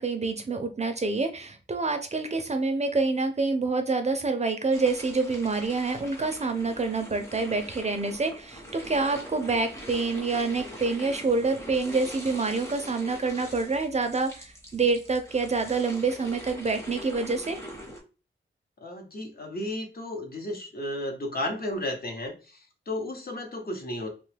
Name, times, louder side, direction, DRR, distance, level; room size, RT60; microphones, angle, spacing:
voice 1, 0.0-17.6, right 3 dB, 35° right, 7 dB, 0.4 m, -27 dB
sound 1, 4.7-18.0, equal, 15° left, 0.9 m, -43 dB
voice 2, 18.8-24.1, left 1 dB, 50° left, 3 dB, 0.9 m, -33 dB
3.0 x 2.2 x 3.3 m, 0.33 s
wide cardioid pair, 110°, 20 cm